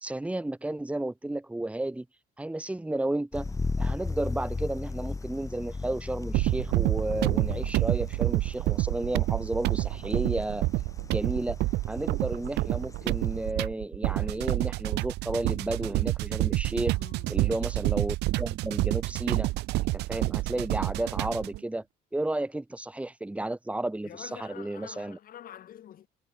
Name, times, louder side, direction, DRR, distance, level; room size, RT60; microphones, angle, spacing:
voice 1, 0.0-2.1 2.4-3.5 3.8-10.6 11.1-11.6 11.9-16.9 17.3-19.5 19.9-21.8 22.1-25.2, right 1 dB, 5° right, 1.6 m, -32 dB
sound 1, 3.3-13.5, left 3 dB, 20° left, 7.8 m, -37 dB
sound 2, 6.3-21.6, right 19 dB, 85° right, 1.4 m, -28 dB
voice 2, 16.9-17.5 24.0-26.1, left 11 dB, 60° left, 5.6 m, -46 dB
cardioid pair, 110°, 17 cm